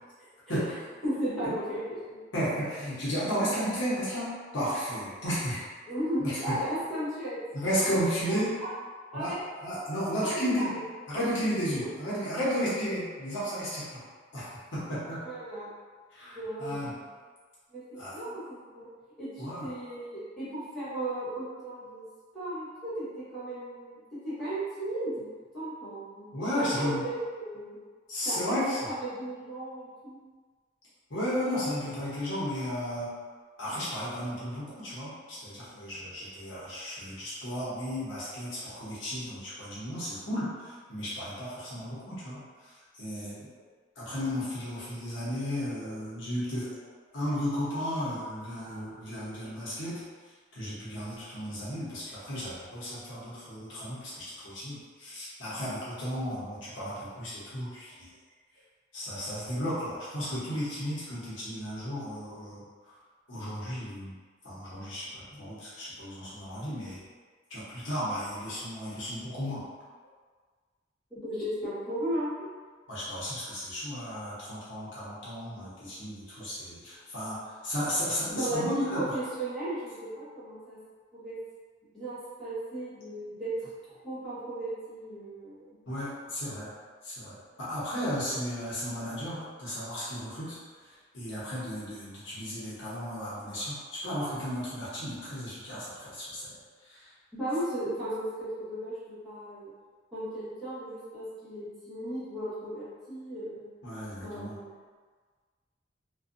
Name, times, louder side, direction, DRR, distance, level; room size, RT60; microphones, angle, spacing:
voice 1, 1.0-2.2 5.9-7.6 8.3-8.7 9.1-9.4 9.8-9.9 10.2-10.8 15.2-15.7 16.3-17.0 17.7-18.9 19.2-22.0 22.3-25.2 25.5-26.3 26.6-27.8 28.2-30.2 45.9-46.0 71.1-72.5 78.3-80.8 81.1-81.4 81.9-85.8 97.3-99.7 100.1-103.6 104.2-104.7, right 1 dB, ahead, -14 dB, 1.1 m, -35 dB
voice 2, 2.3-5.6 6.2-6.6 7.5-8.6 9.1-10.7 11.1-14.0 14.3-15.2 16.1-16.9 18.0-18.2 19.4-19.7 26.3-27.0 28.1-28.8 31.1-33.1 33.6-43.5 44.0-46.7 47.1-50.0 50.5-58.1 58.9-62.6 63.3-64.1 64.4-67.0 67.5-69.6 72.9-79.2 85.9-86.7 87.0-90.6 90.8-96.5 96.8-97.1 103.8-104.6, equal, 85° left, -9 dB, 0.9 m, -34 dB
2.6 x 2.3 x 2.5 m, 1.5 s
head